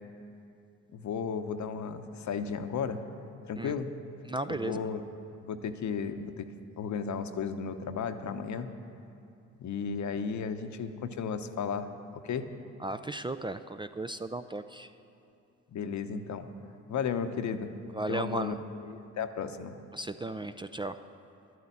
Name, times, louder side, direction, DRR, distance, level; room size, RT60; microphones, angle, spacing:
voice 1, 0.9-3.0 3.5-3.9 4.5-5.0 5.4-6.5 6.8-8.7 9.6-11.9 12.1-12.5 15.7-16.5 16.9-17.7 18.1-18.5 18.8-19.7, left 6 dB, 55° left, 9 dB, 0.9 m, -34 dB
voice 2, 4.3-4.9 12.8-14.9 17.9-18.5 19.9-21.0, right 2 dB, 15° right, 9 dB, 0.4 m, -35 dB
11.0 x 9.3 x 8.5 m, 2.6 s
hypercardioid pair, 50°, 34 cm